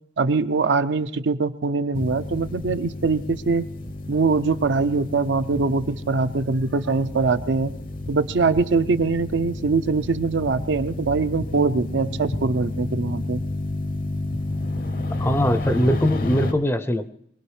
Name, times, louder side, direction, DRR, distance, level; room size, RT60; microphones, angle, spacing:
voice 1, 0.2-3.6 4.1-7.7 8.1-13.4, right 4 dB, 70° right, 11 dB, 0.5 m, -22 dB
sound 1, 1.9-16.5, left 2 dB, 50° left, 0.7 m, -31 dB
voice 2, 15.2-17.1, equal, 15° left, 12 dB, 0.5 m, -21 dB
23.5 x 19.0 x 3.2 m, 0.75 s
head